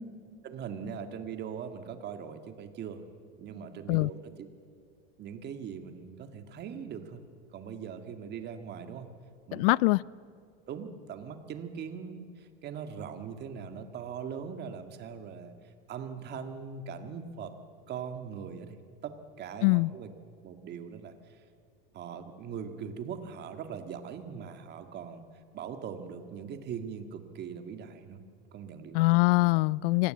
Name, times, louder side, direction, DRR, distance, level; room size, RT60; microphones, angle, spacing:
voice 1, 0.4-3.0 3.4-4.5 5.2-7.2 7.5-9.1 9.5-9.8 10.7-15.5 15.9-17.5 17.9-18.8 19.0-20.1 20.4-21.4 21.9-25.2 25.5-28.2 28.5-29.1, right 7 dB, 35° right, 1.8 m, -41 dB
voice 2, 9.5-10.0 19.6-19.9 28.9-30.1, left 24 dB, 65° left, 0.5 m, -23 dB
24.5 x 18.0 x 7.8 m
supercardioid pair, 135°, 31 cm